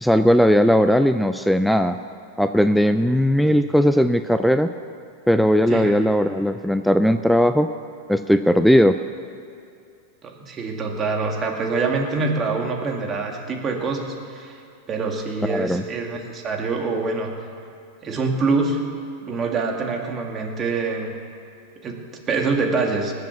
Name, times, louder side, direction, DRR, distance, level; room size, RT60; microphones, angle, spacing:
voice 1, 0.0-2.0 2.4-4.7 5.3-7.7 8.1-9.0 15.5-15.8, equal, ahead, 9 dB, 0.4 m, -18 dB
voice 2, 10.2-14.6 14.9-17.3 18.0-18.8 19.2-21.1 21.8-23.1, right 4 dB, 30° right, 2 dB, 2.1 m, -25 dB
19.0 x 7.6 x 7.1 m, 2.6 s
hypercardioid pair, 120°, 0 cm